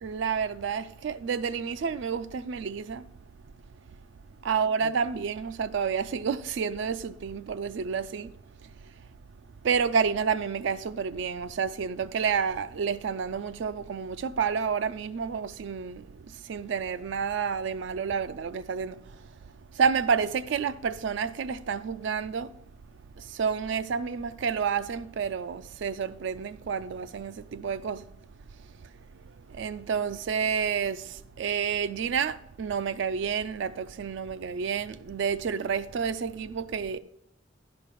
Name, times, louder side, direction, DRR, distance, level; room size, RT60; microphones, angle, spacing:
voice 1, 0.0-3.1 3.9-4.0 4.4-8.3 8.6-9.1 9.6-22.6 23.1-28.1 28.7-37.0, right 6 dB, 65° right, 0.4 m, -30 dB
11.0 x 5.2 x 4.6 m
head